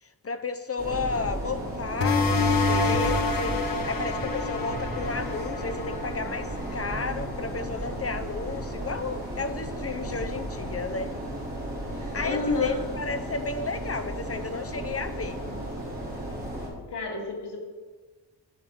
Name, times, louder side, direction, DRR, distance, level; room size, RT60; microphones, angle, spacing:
voice 1, 0.0-11.1 12.1-15.4, left 4 dB, 35° left, 9 dB, 0.5 m, -33 dB
sound 1, 0.8-16.7, right 1 dB, 20° right, 4.3 m, -34 dB
sound 2, 2.0-7.2, left 3 dB, 55° left, 1.3 m, -27 dB
voice 2, 12.0-12.8 16.9-17.6, left 2 dB, 75° left, -1 dB, 3.0 m, -30 dB
9.9 x 8.6 x 6.3 m, 1.3 s
wide cardioid pair, 165°, 41 cm